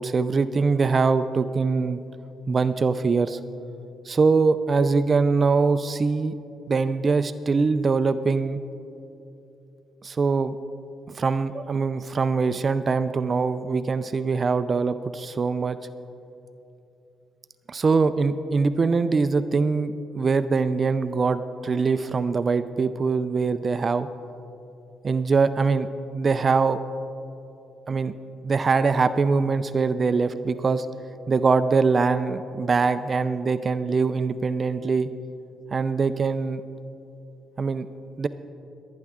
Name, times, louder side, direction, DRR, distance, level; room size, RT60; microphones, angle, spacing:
voice 1, 0.0-2.0 2.5-3.4 4.1-6.3 6.7-8.6 10.0-10.6 11.1-15.8 17.7-24.1 25.0-25.9 26.1-26.8 27.9-28.1 28.4-30.9 31.3-35.1 35.7-36.6 37.6-37.9 38.2-38.3, right 4 dB, 40° right, 11 dB, 0.4 m, -23 dB
23.5 x 9.4 x 3.7 m, 2.8 s
cardioid pair, 90°, 0 cm